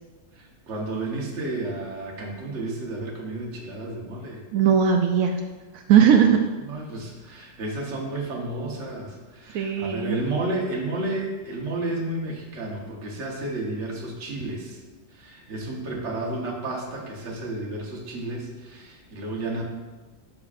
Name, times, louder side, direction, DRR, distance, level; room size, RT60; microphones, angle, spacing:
voice 1, 0.3-4.4 6.7-14.8 15.1-19.6, right 2 dB, 60° right, -2 dB, 1.5 m, -32 dB
voice 2, 4.5-5.4 5.7-6.4 9.5-10.2, right 8 dB, 85° right, 3 dB, 1.0 m, -18 dB
12.0 x 6.1 x 2.5 m, 1.3 s
omnidirectional pair, 1.4 m